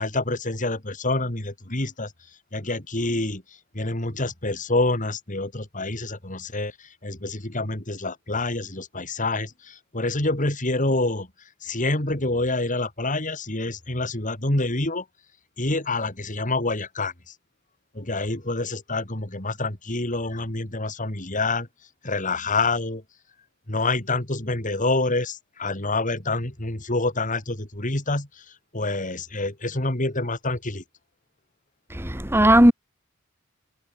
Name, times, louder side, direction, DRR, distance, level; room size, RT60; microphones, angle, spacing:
voice 1, 0.0-2.1 2.5-3.4 3.7-11.3 11.6-15.1 15.6-17.3 17.9-21.7 22.0-23.0 23.7-28.5 28.7-30.8, left 2 dB, 35° left, 3.8 m, -27 dB
voice 2, 31.9-32.7, right 1 dB, 10° right, 3.2 m, -16 dB
head